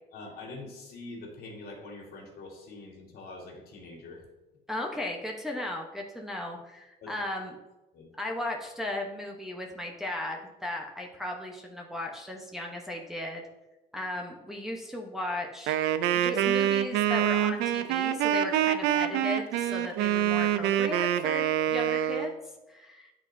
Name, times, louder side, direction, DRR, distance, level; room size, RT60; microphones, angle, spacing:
voice 1, 0.1-4.2 7.0-7.2 7.9-8.1, left 2 dB, 65° left, -1 dB, 2.1 m, -44 dB
voice 2, 4.7-7.5 8.2-13.4 13.9-15.8 16.1-22.3 22.7-23.1, left 1 dB, ahead, -1 dB, 0.9 m, -36 dB
Wind instrument woodwind instrument, 15.7-22.3, right 11 dB, 90° right, 0.4 m, -26 dB
9.6 x 4.1 x 2.7 m, 1.0 s
cardioid pair, 110°, 17 cm